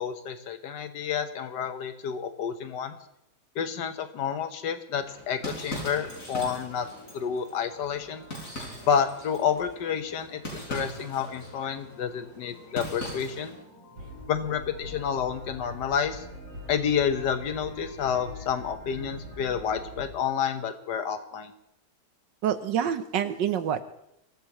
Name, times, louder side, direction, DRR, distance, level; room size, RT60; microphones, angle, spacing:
voice 1, 0.0-3.0 3.5-6.9 7.1-8.2 8.8-13.5 14.3-16.3 16.7-21.5, left 7 dB, 60° left, 8 dB, 1.6 m, -29 dB
sound 1, 4.9-13.6, equal, 40° left, 5.6 m, -41 dB
sound 2, 6.0-19.8, left 1 dB, 15° left, 2.7 m, -51 dB
sound 3, 14.0-20.0, equal, 90° right, 4.5 m, -44 dB
voice 2, 22.4-23.8, right 9 dB, 70° right, 11 dB, 1.4 m, -27 dB
24.0 x 14.5 x 3.1 m, 0.81 s
omnidirectional pair, 2.2 m